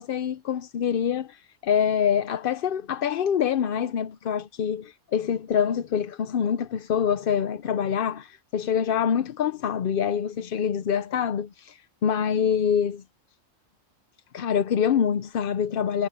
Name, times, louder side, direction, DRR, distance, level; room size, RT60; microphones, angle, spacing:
voice 1, 0.0-13.0 14.3-16.1, left 8 dB, 55° left, 0.7 m, -25 dB
omnidirectional pair, 1.3 m